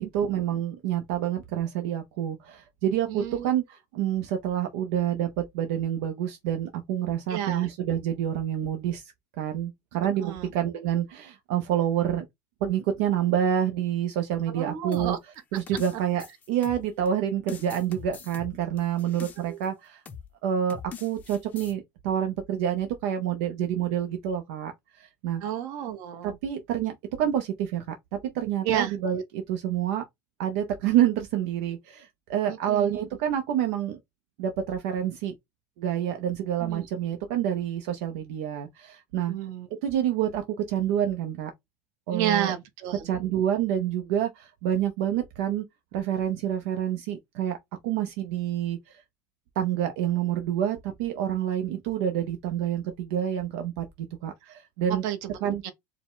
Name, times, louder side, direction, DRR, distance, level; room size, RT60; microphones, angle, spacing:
voice 1, 0.0-5.3 5.5-9.0 9.4-12.2 12.6-15.2 15.5-20.0 20.4-24.7 25.2-25.4 26.2-27.9 28.3-30.0 30.4-34.0 34.4-35.3 35.8-39.3 39.8-41.5 42.1-42.5 43.0-45.6 45.9-47.6 47.8-48.8 49.6-53.8 54.2-55.0 55.4-55.6, right 10 dB, 70° right, 0.7 m, -28 dB
voice 2, 3.1-3.5 7.3-7.7 10.2-10.5 14.5-15.2 19.4-19.6 25.4-26.4 28.6-28.9 32.5-32.9 36.6-36.8 39.3-39.7 42.1-43.1 54.9-55.4 55.6-55.7, right 10 dB, 50° right, 1.0 m, -31 dB
sound 1, 14.9-17.1 17.5-19.7 20.1-20.3 20.7-21.7, left 7 dB, 20° left, 0.6 m, -43 dB
4.7 x 2.2 x 3.7 m
cardioid pair, 175°, 8 cm